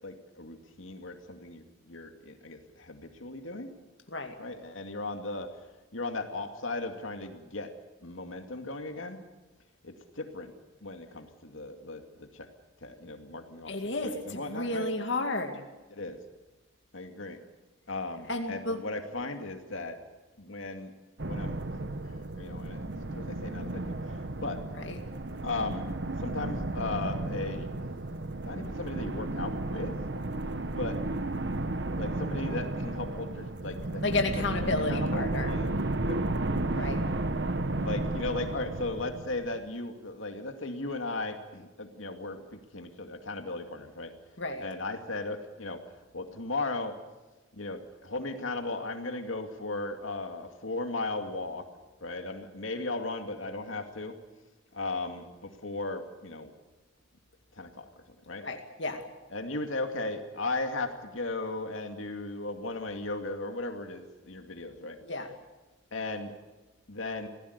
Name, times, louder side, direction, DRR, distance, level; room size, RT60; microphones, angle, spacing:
voice 1, 0.0-3.7 4.4-5.7 5.9-7.7 8.0-9.2 9.8-10.5 10.8-12.5 12.8-13.7 14.0-14.9 15.9-16.2 16.9-17.4 17.9-20.0 20.4-20.9 21.3-24.6 25.4-25.8 26.2-27.7 28.4-30.0 30.8-31.0 32.0-34.2 34.9-35.7 36.0-36.2 37.8-44.1 44.6-47.0 47.5-51.7 52.0-54.2 54.7-56.5 57.5-57.9 58.3-58.4 59.3-65.0 65.9-66.3 66.9-67.3, left 2 dB, 75° left, 5 dB, 2.4 m, -36 dB
voice 2, 13.7-15.6 18.3-18.8 24.8-25.0 34.0-35.5 36.7-37.0 44.4-44.7 58.4-59.0 65.0-65.3, left 2 dB, 60° left, 4 dB, 2.3 m, -32 dB
sound 1, 21.2-39.6, right 2 dB, 55° right, 1.1 m, -33 dB
26.5 x 17.5 x 8.1 m, 1.2 s
head